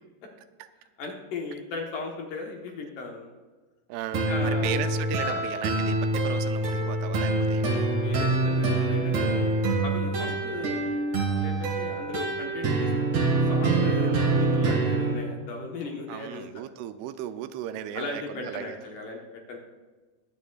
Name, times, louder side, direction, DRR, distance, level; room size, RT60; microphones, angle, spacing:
voice 1, 1.0-3.3 4.1-4.8 5.2-5.4 8.0-11.0 11.3-12.9 13.5-16.4 17.9-19.6, left 3 dB, 65° left, 1 dB, 2.5 m, -37 dB
voice 2, 3.9-7.9 10.2-10.3 14.0-14.5 16.1-18.8, right 11 dB, 85° right, 11 dB, 2.6 m, -36 dB
sound 1, 4.1-15.1, right 2 dB, 55° right, 2.7 m, -25 dB
21.5 x 9.1 x 2.4 m, 1.3 s
omnidirectional pair, 4.6 m